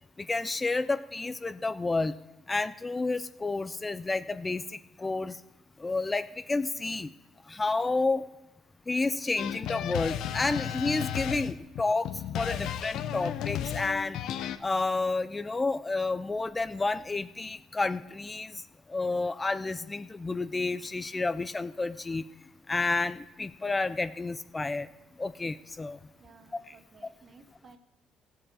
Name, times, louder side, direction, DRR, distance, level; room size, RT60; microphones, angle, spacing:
voice 1, 0.2-2.2 2.5-5.4 5.8-7.1 7.5-8.3 8.9-12.1 12.4-14.2 14.6-18.6 18.9-22.2 22.7-24.9 25.2-26.0 26.7-26.8, left 3 dB, 20° left, 12 dB, 0.4 m, -30 dB
sound 1, 9.4-14.6, left 10 dB, 75° left, 0.6 m, -33 dB
voice 2, 26.2-27.8, right 4 dB, 40° right, 9 dB, 1.1 m, -56 dB
16.0 x 7.5 x 4.8 m, 1.0 s
cardioid pair, 110°, 0 cm